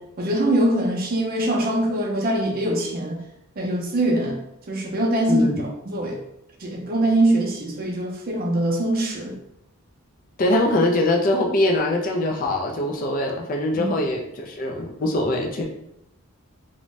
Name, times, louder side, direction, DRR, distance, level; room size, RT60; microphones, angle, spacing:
voice 1, 0.2-3.2 3.6-6.2 6.6-9.3 13.8-14.0, right 1 dB, 40° right, 0 dB, 0.5 m, -23 dB
voice 2, 5.3-5.7 10.4-15.7, left 1 dB, 35° left, 2 dB, 0.3 m, -22 dB
2.5 x 2.1 x 3.1 m, 0.79 s
head